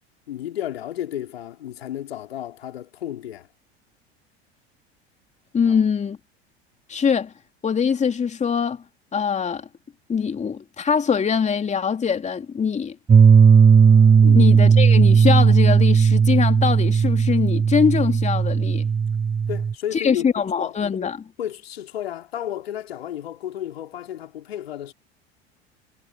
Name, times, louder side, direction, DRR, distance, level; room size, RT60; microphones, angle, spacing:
voice 1, 0.3-3.5 5.7-5.8 14.2-14.5 19.5-20.3 20.6-21.1 21.4-24.9, left 11 dB, 70° left, 3.7 m, -32 dB
voice 2, 5.5-6.2 6.9-7.3 7.6-8.8 9.1-9.7 10.1-13.0 14.3-18.8 19.9-21.2, left 6 dB, 20° left, 2.7 m, -22 dB
sound 1, 13.1-19.7, right 6 dB, 20° right, 1.3 m, -15 dB
figure-of-eight pair, 75°, 32 cm